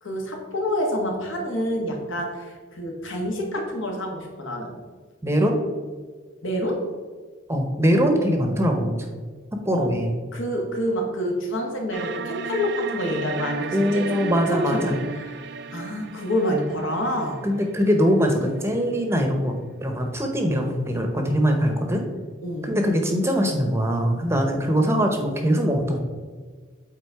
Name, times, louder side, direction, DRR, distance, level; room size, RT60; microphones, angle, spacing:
voice 1, 0.0-4.7 6.4-6.8 9.7-9.9 10.3-17.4 22.4-22.7, equal, 70° left, 1 dB, 1.5 m, -28 dB
voice 2, 5.2-5.6 7.5-9.0 9.6-10.2 13.7-15.0 17.4-19.6 19.8-22.0 22.6-26.0, equal, 15° right, 3 dB, 0.8 m, -22 dB
sound 1, 11.9-18.9, right 5 dB, 55° right, 0.4 m, -35 dB
8.3 x 4.1 x 4.7 m, 1.5 s
head